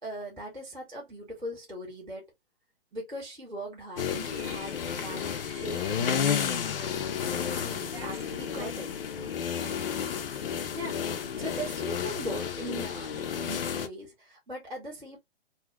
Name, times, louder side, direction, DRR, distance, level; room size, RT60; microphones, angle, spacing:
voice 1, 0.0-2.3 2.9-6.5 7.5-8.9 10.7-15.2, right 1 dB, ahead, 0.3 m, -40 dB
sound 1, 4.0-13.9, left 8 dB, 60° left, 0.7 m, -32 dB
sound 2, 4.3-7.2, right 6 dB, 30° right, 0.7 m, -52 dB
voice 2, 6.9-8.8 9.1-9.9, right 6 dB, 70° right, 0.7 m, -48 dB
2.8 x 2.4 x 3.1 m
hypercardioid pair, 160°, 32 cm